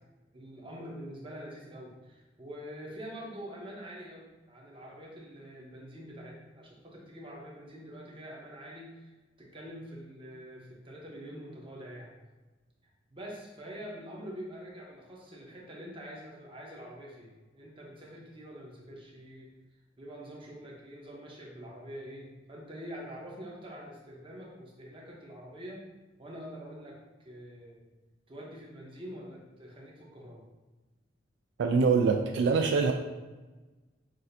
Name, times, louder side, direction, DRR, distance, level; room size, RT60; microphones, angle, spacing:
voice 1, 0.3-12.1 13.1-19.5 20.0-25.8 26.2-27.8 28.3-30.4, equal, 30° right, -3 dB, 0.9 m, -45 dB
voice 2, 31.6-32.9, right 5 dB, 70° right, 3 dB, 0.3 m, -24 dB
6.2 x 2.6 x 2.6 m, 1.2 s
head